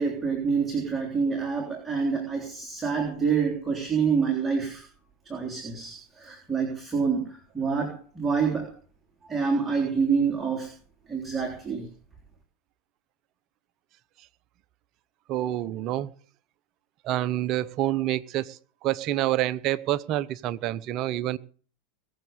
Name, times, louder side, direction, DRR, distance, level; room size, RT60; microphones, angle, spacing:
voice 1, 0.0-4.9 5.3-8.7 9.3-10.7 11.1-11.9, right 5 dB, 15° right, 0 dB, 3.6 m, -27 dB
voice 2, 15.3-16.1 17.0-21.4, right 13 dB, 45° right, 18 dB, 0.8 m, -27 dB
21.5 x 7.3 x 6.8 m, 0.43 s
figure-of-eight pair, 90°, 0 cm